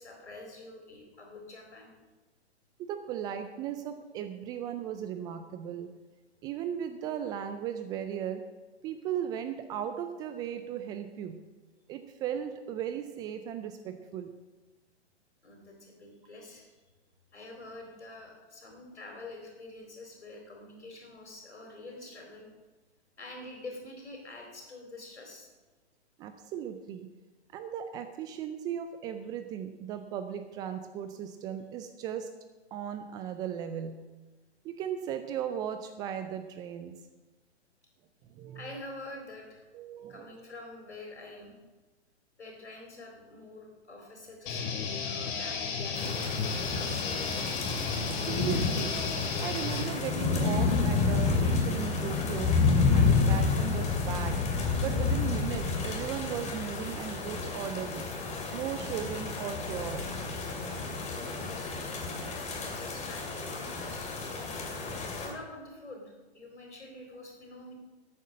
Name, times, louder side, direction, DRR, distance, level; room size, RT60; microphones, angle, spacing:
voice 1, 0.0-1.9 15.4-16.7 17.3-22.5 23.2-25.5 38.5-39.6 40.1-41.6 42.4-46.3 46.5-47.6 61.1-61.7 62.6-64.1 65.2-67.7, left 2 dB, 90° left, 1 dB, 4.0 m, -46 dB
voice 2, 2.8-5.9 6.4-8.4 8.8-11.4 11.9-14.3 26.2-27.1 27.5-32.3 32.7-34.0 34.6-37.0 38.3-38.7 39.7-40.4 48.3-49.0 49.4-52.6 52.9-54.4 54.8-58.1 58.5-60.2, right 9 dB, 15° right, 9 dB, 0.3 m, -37 dB
sound 1, 44.5-49.8, left 5 dB, 45° left, 2.7 m, -34 dB
sound 2, 46.0-65.3, left 4 dB, 20° left, 2.5 m, -30 dB
13.0 x 8.6 x 6.3 m, 1.2 s
figure-of-eight pair, 110°, 33 cm